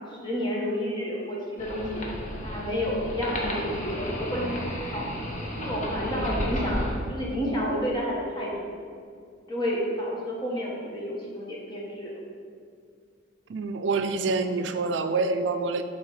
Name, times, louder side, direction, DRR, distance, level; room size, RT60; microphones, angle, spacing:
voice 1, 0.1-2.0 2.4-5.1 5.6-8.7 9.5-12.1, equal, 25° left, -4 dB, 1.4 m, -30 dB
sound 1, 1.6-6.9, equal, 45° left, 1.1 m, -33 dB
voice 2, 13.5-15.8, right 3 dB, 85° right, 9 dB, 0.4 m, -26 dB
8.1 x 3.4 x 5.0 m, 2.2 s
head